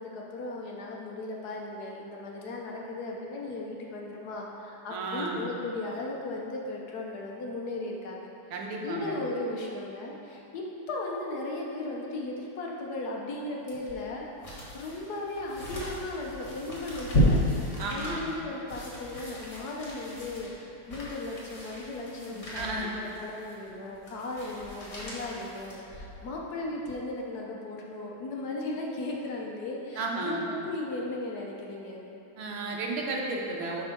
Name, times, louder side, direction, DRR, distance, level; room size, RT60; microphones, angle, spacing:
voice 1, 0.0-8.3 8.8-17.4 17.9-32.0, left 2 dB, 60° left, -2 dB, 1.3 m, -36 dB
voice 2, 4.9-5.4 8.5-9.2 17.8-18.3 22.2-22.9 30.0-30.4 32.4-33.8, right 2 dB, 85° right, -1 dB, 1.7 m, -33 dB
sound 1, 13.7-26.3 26.8-26.9, equal, 35° left, 1.6 m, -33 dB
7.8 x 3.6 x 5.8 m, 2.8 s
omnidirectional pair, 2.2 m